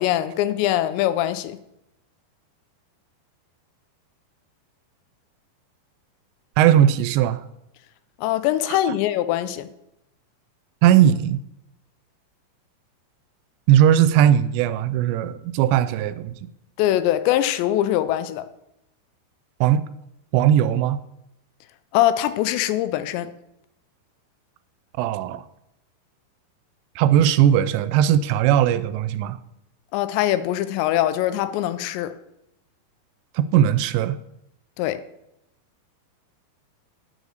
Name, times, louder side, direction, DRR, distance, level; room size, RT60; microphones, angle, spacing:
voice 1, 0.0-1.6 8.2-9.7 16.8-18.5 21.9-23.3 29.9-32.1 34.8-35.0, left 13 dB, 85° left, 2.7 m, -22 dB
voice 2, 6.6-7.4 8.9-9.0 10.8-11.4 13.7-16.4 19.6-19.9 20.3-21.0 25.0-25.4 27.0-29.4 33.4-34.2, right 10 dB, 85° right, 2.7 m, -18 dB
9.8 x 5.4 x 6.4 m
omnidirectional pair, 5.1 m